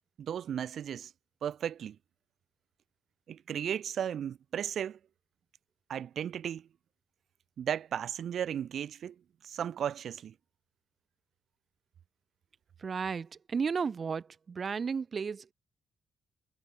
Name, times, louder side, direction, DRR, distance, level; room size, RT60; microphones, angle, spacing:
voice 1, 0.2-1.1 1.4-2.0 3.3-5.0 5.9-6.7 7.6-9.1 9.4-10.3, right 9 dB, 60° right, 1.1 m, -35 dB
voice 2, 12.8-15.5, right 5 dB, 40° right, 1.2 m, -33 dB
cardioid pair, 90°, 0 cm